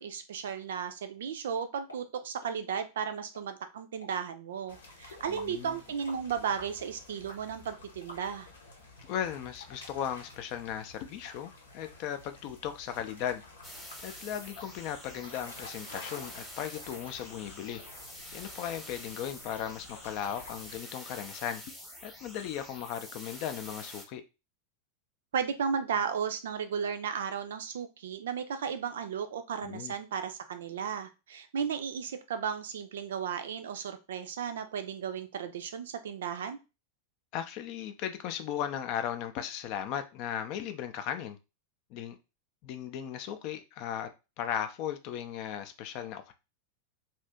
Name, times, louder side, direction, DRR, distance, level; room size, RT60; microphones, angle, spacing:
voice 1, 0.0-8.5 25.3-36.6, right 7 dB, 60° right, 0.4 m, -35 dB
sound 1, 1.9-2.0 2.4-2.5 3.0-3.1 3.3-3.5 4.0-4.2 4.7-4.8 5.4-5.6 6.1-6.2 6.6-6.8 7.3-7.4 8.1-8.5 9.0-9.1 9.6-9.7 10.2-10.3, left 1 dB, 85° left, 1.2 m, -49 dB
sound 2, 4.7-20.8, left 3 dB, 70° left, 0.8 m, -51 dB
voice 2, 5.3-5.8 9.1-13.4 14.0-17.8 18.3-21.6 22.0-24.2 29.6-29.9 37.3-41.4 41.9-42.2 42.6-44.1 44.4-46.3, left 9 dB, 45° left, 0.4 m, -37 dB
sound 3, 13.6-24.0, equal, ahead, 0.9 m, -47 dB
2.8 x 2.5 x 3.4 m
figure-of-eight pair, 90°, 0 cm